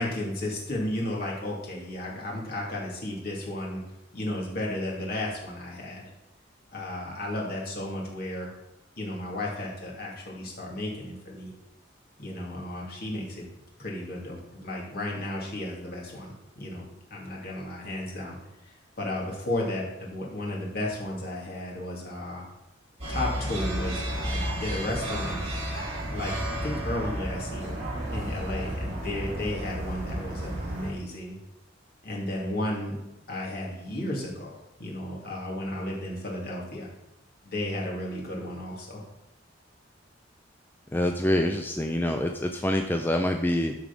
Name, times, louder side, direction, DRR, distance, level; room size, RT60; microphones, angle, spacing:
voice 1, 0.0-3.8 4.1-6.0 6.7-8.5 9.0-11.5 12.2-13.4 13.8-16.8 17.1-18.4 18.6-22.4 23.1-25.4 26.1-27.8 28.1-31.4 32.0-33.0 33.3-36.9 37.4-39.0, left 1 dB, 55° left, -3 dB, 2.7 m, -33 dB
sound 1, 23.0-30.9, right 1 dB, 35° right, 4.2 m, -32 dB
voice 2, 40.9-43.7, left 1 dB, 10° left, 4 dB, 0.5 m, -26 dB
13.0 x 4.9 x 5.4 m, 0.93 s
head